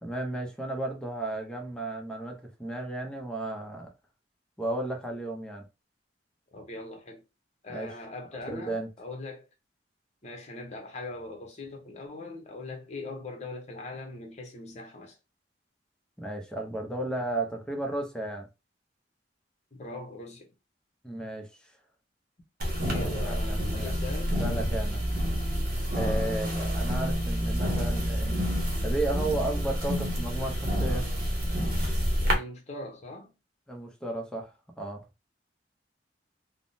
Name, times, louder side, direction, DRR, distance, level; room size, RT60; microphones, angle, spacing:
voice 1, 0.0-3.9 4.6-5.7 7.7-7.9 8.5-8.9 16.2-18.5 21.0-21.5 23.0-23.9 24.4-25.1 25.9-28.5 28.8-31.1 33.7-35.0, right 2 dB, 5° left, 0.6 m, -34 dB
voice 2, 6.5-7.2 7.6-9.5 10.2-15.1 19.7-20.5 22.8-24.3 26.2-26.6 32.2-33.3, left 2 dB, 40° left, 0.8 m, -41 dB
sound 1, 22.6-32.3, equal, 55° right, 0.8 m, -28 dB
3.5 x 2.1 x 2.6 m
head